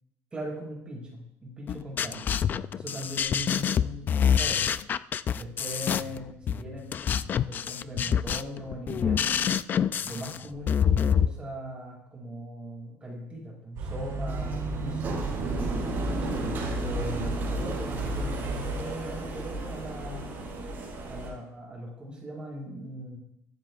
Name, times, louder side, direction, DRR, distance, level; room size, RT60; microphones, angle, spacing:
voice 1, 0.3-2.3 2.7-4.8 5.3-6.9 7.2-9.4 10.0-15.3 16.1-20.4 21.1-23.2, equal, 20° right, -3 dB, 5.9 m, -39 dB
sound 1, 1.7-11.3, left 8 dB, 35° left, 0.4 m, -26 dB
sound 2, 13.8-18.8, right 2 dB, 70° right, 6.7 m, -33 dB
sound 3, 14.3-21.3, right 2 dB, 35° right, 6.4 m, -34 dB
22.5 x 15.5 x 2.5 m, 0.78 s
cardioid pair, 160°, 5 cm